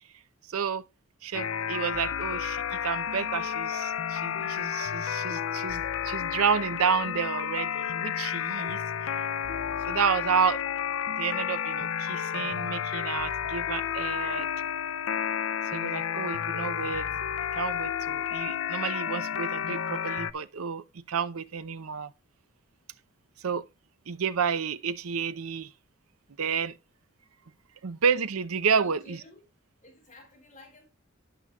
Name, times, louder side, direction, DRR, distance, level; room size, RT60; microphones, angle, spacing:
voice 1, 0.5-0.8 1.2-9.2 9.9-10.6 11.2-14.5 15.7-17.2 17.5-22.1 23.4-23.7 24.1-25.7 26.4-26.8 27.8-29.2, right 6 dB, 85° right, 0.6 m, -30 dB
sound 1, 1.3-20.3, left 8 dB, 70° left, 0.5 m, -31 dB
voice 2, 28.6-29.4 29.8-30.9, left 2 dB, 35° left, 3.6 m, -52 dB
12.0 x 9.2 x 2.3 m
head